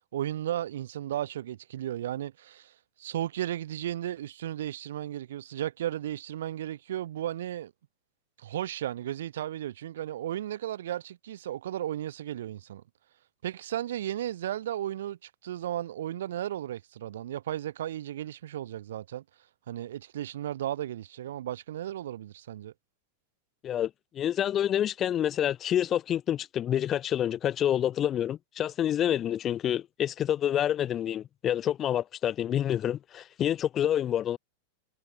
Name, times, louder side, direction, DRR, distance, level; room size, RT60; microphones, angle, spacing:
voice 1, 0.0-7.7 8.4-12.8 13.4-19.2 19.7-22.7, right 12 dB, 60° right, 0.6 m, -35 dB
voice 2, 23.6-34.4, left 10 dB, 30° left, 0.4 m, -28 dB
figure-of-eight pair, 90°, 0 cm